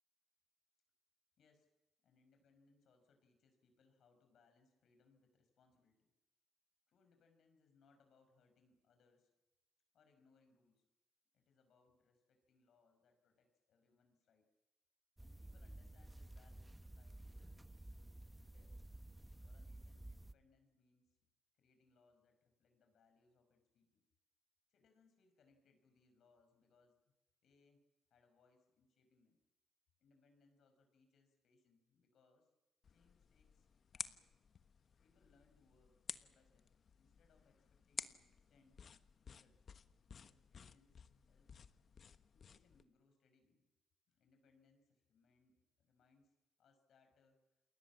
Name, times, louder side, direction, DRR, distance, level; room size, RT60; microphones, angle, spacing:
voice 1, 1.4-1.7 2.0-6.1 6.9-9.3 9.9-10.8 11.3-14.5 15.2-18.7 19.4-21.2 21.5-24.0 24.7-27.0 27.4-27.8 28.1-29.4 30.0-32.5 32.9-33.7 33.9-34.2 35.0-38.8 39.3-39.6 40.2-41.0 41.3-41.6 42.3-43.7 44.1-46.3 46.6-47.4, left 4 dB, 65° left, 6 dB, 5.6 m, -74 dB
sound 1, 15.2-20.3, right 1 dB, 10° right, 1.1 m, -54 dB
sound 2, 32.8-42.8, left 6 dB, 50° left, 1.2 m, -53 dB
29.0 x 20.5 x 7.4 m, 1.1 s
cardioid pair, 90°, 0 cm